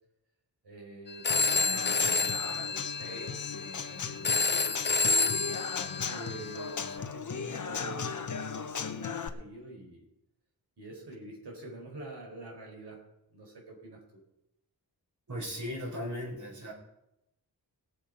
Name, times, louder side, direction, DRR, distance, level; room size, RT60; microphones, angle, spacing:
voice 1, 0.6-5.2 6.0-10.1 10.8-14.2, right 2 dB, 85° right, 0 dB, 4.4 m, -47 dB
Telephone, 1.1-7.0, left 4 dB, 30° left, 0.5 m, -30 dB
Human voice / Acoustic guitar / Drum, 1.3-9.3, left 6 dB, 50° left, 1.0 m, -37 dB
voice 2, 15.3-16.7, equal, 45° right, -1 dB, 4.5 m, -37 dB
19.0 x 7.1 x 5.2 m, 0.88 s
wide cardioid pair, 125°, 39 cm